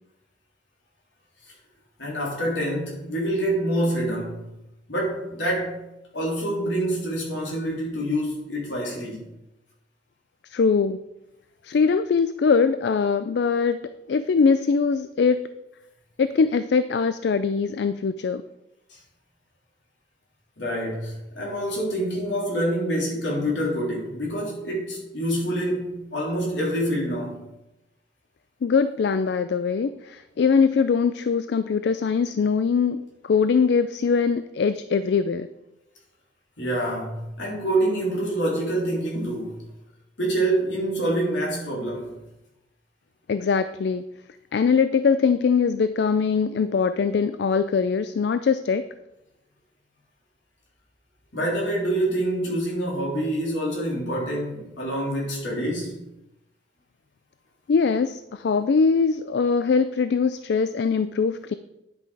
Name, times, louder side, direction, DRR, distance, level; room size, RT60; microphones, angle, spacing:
voice 1, 2.0-4.5 4.9-5.8 6.1-9.3 20.6-27.5 36.6-39.6 40.2-42.2 51.3-56.0, right 1 dB, 85° left, 3.2 m, -26 dB
voice 2, 10.4-11.0 11.6-13.8 14.1-15.4 16.2-18.4 28.6-35.5 43.3-44.0 44.5-48.8 57.7-61.5, left 5 dB, 65° left, 0.3 m, -22 dB
10.5 x 5.7 x 4.8 m
head